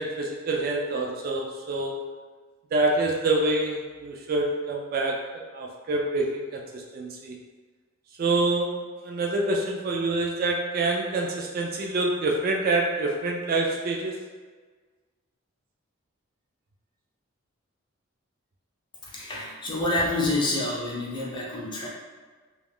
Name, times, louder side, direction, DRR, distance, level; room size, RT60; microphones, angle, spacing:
voice 1, 0.0-1.9 2.7-7.4 8.2-14.2, right 2 dB, 45° right, 0 dB, 0.3 m, -26 dB
voice 2, 19.1-21.9, left 2 dB, 25° left, -4 dB, 0.5 m, -28 dB
2.3 x 2.3 x 3.4 m, 1.4 s
head